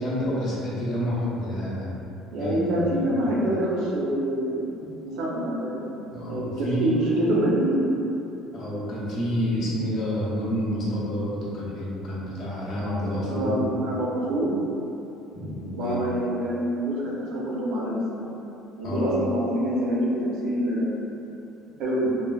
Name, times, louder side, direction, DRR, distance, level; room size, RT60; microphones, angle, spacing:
voice 1, 0.0-2.1 2.4-2.6 6.1-6.9 8.5-13.7 15.3-16.0 18.8-19.0, equal, 40° left, -7 dB, 0.6 m, -29 dB
voice 2, 2.3-7.9 13.2-14.6 15.7-18.2 18.8-21.1 21.8-22.2, right 1 dB, 60° right, -5 dB, 0.5 m, -26 dB
3.1 x 2.1 x 2.3 m, 2.9 s
cardioid pair, 165°, 0 cm